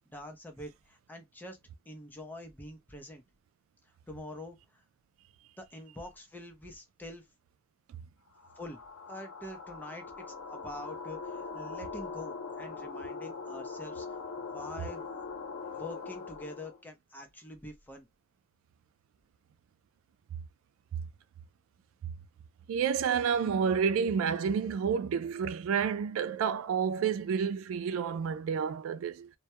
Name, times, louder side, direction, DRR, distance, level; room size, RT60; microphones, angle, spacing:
voice 1, 0.1-1.6 1.9-3.2 4.1-4.8 5.6-7.2 8.6-14.1 14.4-15.0 15.7-18.1, left 1 dB, 10° left, 0.6 m, -45 dB
sound 1, 8.4-16.8, left 4 dB, 80° left, 0.7 m, -41 dB
voice 2, 22.7-29.3, right 7 dB, 75° right, 0.3 m, -29 dB
2.2 x 2.1 x 2.8 m
head